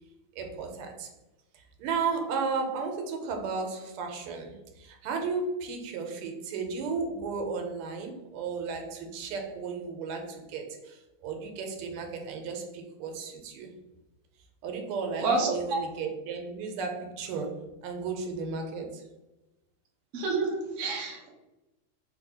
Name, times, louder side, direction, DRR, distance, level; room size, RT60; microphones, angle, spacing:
voice 1, 0.3-1.1 1.5-13.7 14.6-19.1, right 4 dB, 90° right, 3 dB, 1.5 m, -34 dB
voice 2, 15.2-15.5 20.1-21.3, right 3 dB, 65° right, -2 dB, 0.7 m, -28 dB
3.6 x 2.6 x 2.7 m, 1.0 s
omnidirectional pair, 2.3 m